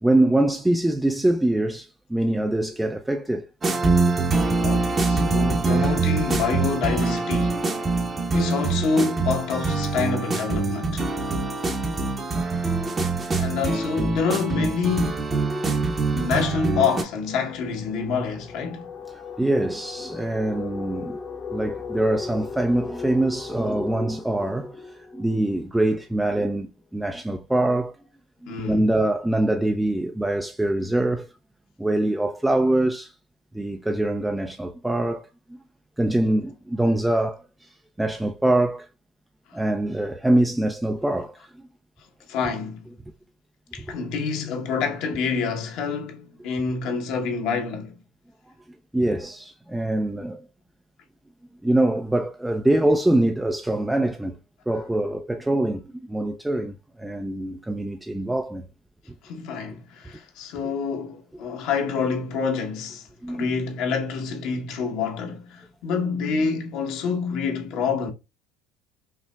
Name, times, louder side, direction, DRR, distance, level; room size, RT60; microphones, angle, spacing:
voice 1, 0.0-3.5 4.1-4.2 19.4-21.2 21.5-28.0 28.4-31.3 31.8-33.1 33.5-35.6 36.0-38.9 39.5-41.6 43.9-44.0 48.9-50.4 51.6-54.4 54.7-58.7 63.2-63.5, right 1 dB, 5° right, 0.4 m, -24 dB
sound 1, 3.6-17.0, right 3 dB, 25° right, 0.8 m, -24 dB
voice 2, 4.6-7.6 8.3-11.1 13.3-15.3 16.1-18.9 28.5-28.9 42.3-42.9 43.7-48.0 59.2-68.1, left 5 dB, 65° left, 0.9 m, -27 dB
sound 2, 14.8-26.1, left 4 dB, 45° left, 0.8 m, -38 dB
5.6 x 2.0 x 2.2 m
supercardioid pair, 90°, 0 cm